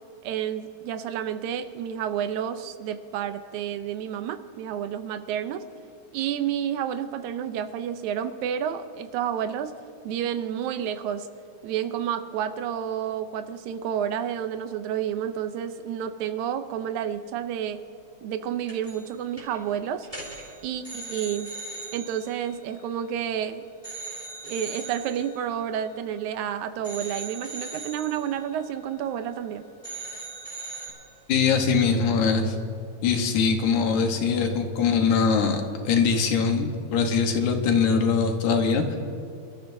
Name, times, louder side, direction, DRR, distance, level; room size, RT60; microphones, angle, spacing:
voice 1, 0.2-5.6 6.1-9.7 10.0-11.3 11.6-17.8 18.2-20.1 20.6-21.5 21.9-23.6 24.4-29.7, right 9 dB, 85° right, 10 dB, 2.1 m, -30 dB
sound 1, 18.7-19.1 19.4-19.6 20.0-23.4 23.8-26.4 26.8-29.5 29.8-30.9, right 3 dB, 15° right, 3.7 m, -40 dB
voice 2, 31.3-32.5 33.0-39.0, left 5 dB, 90° left, 4 dB, 2.6 m, -22 dB
27.5 x 13.0 x 2.7 m, 2.6 s
omnidirectional pair, 3.3 m